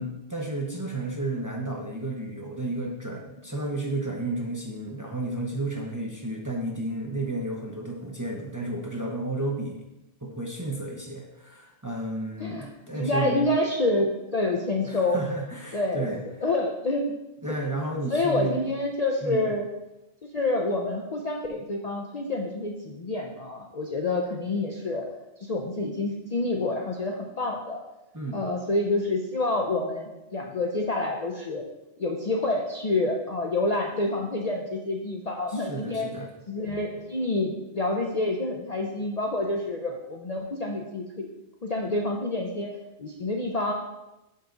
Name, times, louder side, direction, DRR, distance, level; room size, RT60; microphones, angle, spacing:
voice 1, 0.0-9.9 10.2-13.5 14.8-16.2 17.4-18.6 19.2-19.5 28.1-28.4 35.5-36.3, right 2 dB, 20° right, -1 dB, 0.7 m, -32 dB
voice 2, 13.0-15.2 15.7-16.1 16.4-17.0 18.1-19.7 20.2-25.1 25.5-27.8 28.3-31.6 32.0-36.1 36.5-41.3 41.6-42.7 43.0-43.7, left 2 dB, 45° left, 0 dB, 0.6 m, -28 dB
5.8 x 5.4 x 3.8 m, 0.96 s
omnidirectional pair, 1.2 m